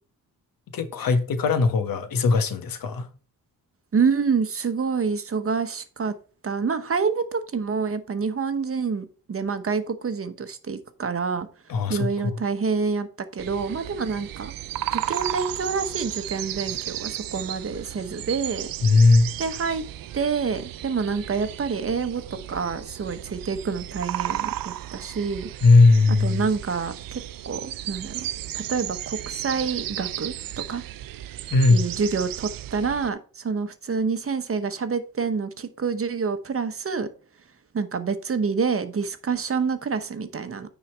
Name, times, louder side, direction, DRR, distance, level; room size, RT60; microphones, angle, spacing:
voice 1, 0.7-3.1 11.7-12.4 18.8-19.3 25.6-26.5 31.5-31.9, left 3 dB, 75° left, 1.3 m, -18 dB
voice 2, 3.9-6.1 6.4-11.5 11.9-13.1 13.3-14.5 14.9-18.7 19.4-19.8 20.1-22.2 22.5-25.5 26.2-28.3 28.5-30.3 30.7-30.8 31.7-37.1 37.7-40.7, right 5 dB, 40° right, 1.0 m, -27 dB
sound 1, 13.4-33.1, right 13 dB, 75° right, 0.5 m, -34 dB
9.4 x 4.1 x 4.4 m
cardioid pair, 95°, 34 cm